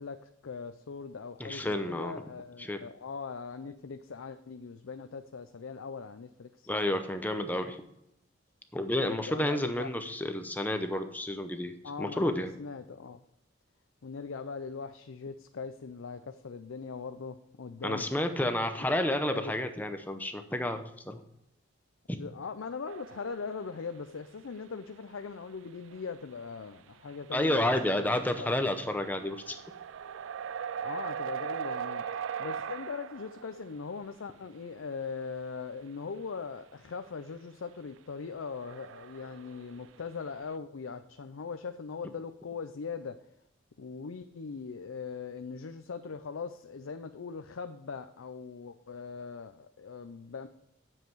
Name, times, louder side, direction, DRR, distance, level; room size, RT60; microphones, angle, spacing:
voice 1, 0.0-6.7 9.0-9.9 11.8-12.3 12.6-13.2 14.0-18.1 19.3-19.5 22.2-28.5 30.8-43.2 43.8-50.5, left 5 dB, 85° left, 8 dB, 0.5 m, -40 dB
voice 2, 1.4-2.1 2.6-2.8 6.7-7.8 8.7-11.7 12.0-12.5 17.8-21.2 22.1-22.2 27.3-29.6, left 1 dB, 10° left, 7 dB, 0.6 m, -30 dB
sound 1, 22.9-23.7 24.5-24.6 25.9-26.0 26.3-26.5 27.1-27.2 27.4-33.8 38.0-38.1 38.3-39.9, right 8 dB, 75° right, 0.4 m, -39 dB
9.1 x 7.5 x 4.6 m, 0.82 s
head